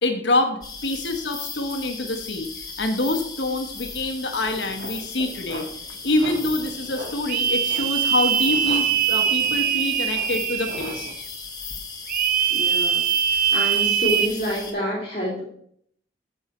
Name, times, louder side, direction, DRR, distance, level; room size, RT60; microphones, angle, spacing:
voice 1, 0.0-5.7 6.0-11.1, left 2 dB, 80° left, 5 dB, 1.2 m, -26 dB
sound 1, 0.6-14.7, left 4 dB, 20° left, 1.3 m, -36 dB
sound 2, 4.4-11.1, right 1 dB, 80° right, 1.7 m, -41 dB
sound 3, 7.3-11.2 12.1-14.3, right 8 dB, 50° right, 0.6 m, -22 dB
voice 2, 12.5-13.0 13.5-15.4, equal, 35° left, -5 dB, 2.6 m, -27 dB
8.7 x 6.4 x 4.3 m, 0.66 s
head